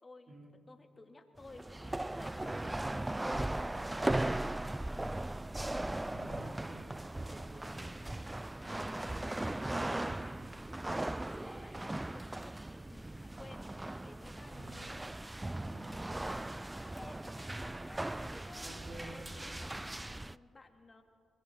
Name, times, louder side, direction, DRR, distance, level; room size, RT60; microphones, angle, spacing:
voice 1, 0.0-0.4 0.7-3.7 6.3-6.7 8.6-8.7 9.0-15.0 15.6-15.9 16.2-18.8 19.1-21.0, left 3 dB, 35° left, 4 dB, 2.2 m, -56 dB
sound 1, 1.4-20.4, right 1 dB, 15° right, 0.4 m, -38 dB
voice 2, 6.1-7.9 8.6-10.5 14.4-14.9 15.6-16.0 18.6-19.2, right 1 dB, 60° right, -1 dB, 4.4 m, -52 dB
30.0 x 21.5 x 4.3 m, 2.2 s
supercardioid pair, 60°, 0 cm